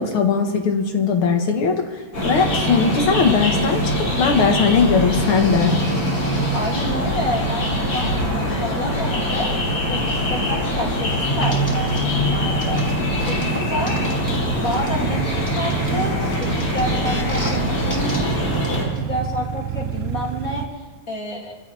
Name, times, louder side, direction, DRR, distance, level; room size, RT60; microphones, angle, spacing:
voice 1, 0.0-1.9 2.2-5.8, left 5 dB, 70° left, 4 dB, 2.4 m, -19 dB
sound 1, 2.1-18.8, equal, 90° left, 4.7 m, -22 dB
voice 2, 6.5-9.5 9.9-12.8 13.2-14.0 14.5-18.0 18.3-18.5 18.9-21.5, left 1 dB, 40° left, -2 dB, 3.2 m, -29 dB
sound 2, 11.4-12.0 12.6-15.0 15.5-17.6 17.9-18.2 18.6-18.7, equal, 10° left, 2.2 m, -31 dB
sound 3, 13.9-20.7, right 11 dB, 60° right, 0.9 m, -30 dB
25.0 x 15.0 x 3.5 m, 1.3 s
omnidirectional pair, 2.4 m